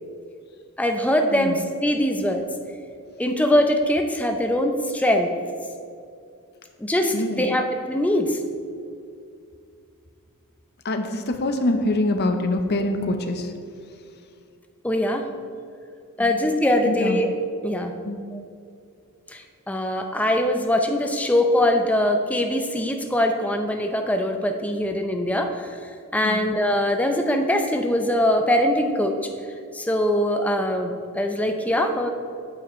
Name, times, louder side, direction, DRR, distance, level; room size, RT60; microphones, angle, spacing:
voice 1, 0.8-2.5 3.2-5.3 6.8-8.4 14.8-15.2 16.2-17.3 17.6-17.9 18.3-18.4 19.3-29.2 29.7-32.1, left 1 dB, 5° left, 4 dB, 0.5 m, -22 dB
voice 2, 7.1-7.5 10.8-13.5 16.2-16.3 16.8-17.2 18.0-18.2 26.2-26.4, left 2 dB, 50° left, 6 dB, 0.6 m, -25 dB
8.8 x 7.5 x 3.1 m, 2.4 s
head